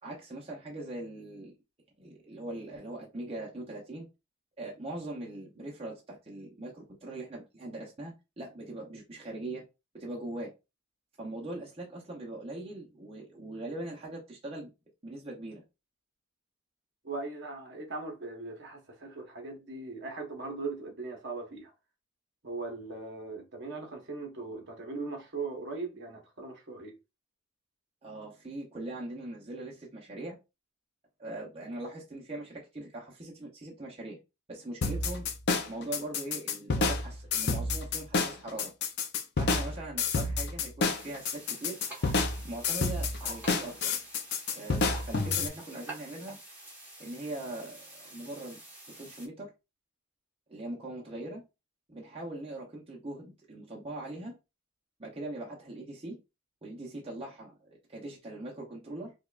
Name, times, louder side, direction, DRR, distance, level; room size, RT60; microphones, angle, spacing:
voice 1, 0.0-1.6 2.0-4.1 4.6-9.6 9.9-10.5 11.2-14.7 15.0-15.6 28.0-30.4 31.2-34.2 34.5-35.3 35.7-38.7 39.4-41.8 42.4-44.0 44.5-46.4 47.0-48.6 49.0-49.5 50.5-51.4 51.9-54.3 55.0-56.2 56.6-59.1, right 1 dB, 25° right, 0.7 m, -41 dB
voice 2, 17.0-21.7 22.4-26.9, right 3 dB, 50° right, 1.0 m, -39 dB
sound 1, 34.8-45.5, left 4 dB, 50° left, 0.5 m, -29 dB
sound 2, 40.8-49.3, right 2 dB, 10° right, 1.1 m, -48 dB
5.0 x 2.3 x 2.4 m
head